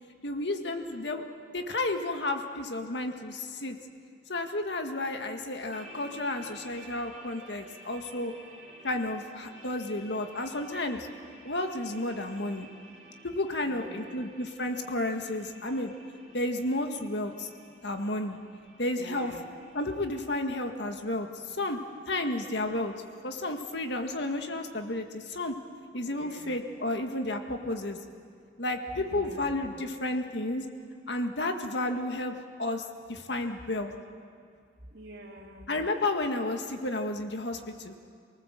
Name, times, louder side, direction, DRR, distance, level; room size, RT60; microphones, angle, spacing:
voice 1, 0.2-1.2 1.5-3.8 4.3-8.3 8.8-11.1 11.4-12.7 13.2-15.9 16.3-17.5 17.8-18.4 18.8-19.3 19.7-21.8 22.1-22.9 23.2-25.5 25.9-28.0 28.6-30.6 31.1-32.8 33.1-33.9 35.7-38.0, left 2 dB, 70° left, 4 dB, 1.9 m, -32 dB
sound 1, 5.7-20.2, right 1 dB, 40° right, 2.5 m, -52 dB
voice 2, 13.6-14.3 19.0-19.6 26.1-26.6 29.0-29.7 34.9-35.7, equal, 60° right, 1 dB, 2.9 m, -46 dB
28.5 x 19.0 x 7.6 m, 2.3 s
head